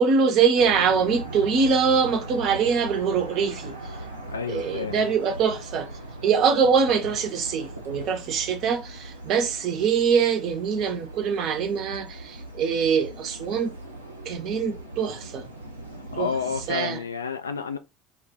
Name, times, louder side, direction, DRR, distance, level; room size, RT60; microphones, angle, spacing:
voice 1, 0.0-4.0 4.5-5.9 6.2-13.7 14.2-15.5 16.1-16.3 16.7-17.0, right 6 dB, 50° right, 0.7 m, -23 dB
sound 1, 0.5-16.7, right 1 dB, 90° right, 0.6 m, -39 dB
voice 2, 4.3-5.1 16.1-17.8, left 6 dB, 80° left, 0.3 m, -30 dB
2.3 x 2.3 x 3.8 m
figure-of-eight pair, 70°, 0 cm